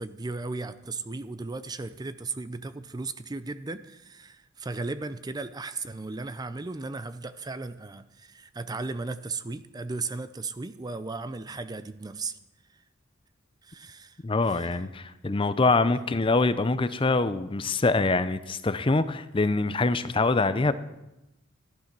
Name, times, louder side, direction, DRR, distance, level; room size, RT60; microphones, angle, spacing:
voice 1, 0.0-12.4 13.6-14.2 14.5-14.7 15.9-16.0, right 3 dB, 20° right, 13 dB, 0.5 m, -36 dB
voice 2, 14.2-20.7, left 3 dB, 25° left, 13 dB, 0.5 m, -24 dB
14.5 x 11.0 x 6.0 m, 0.94 s
head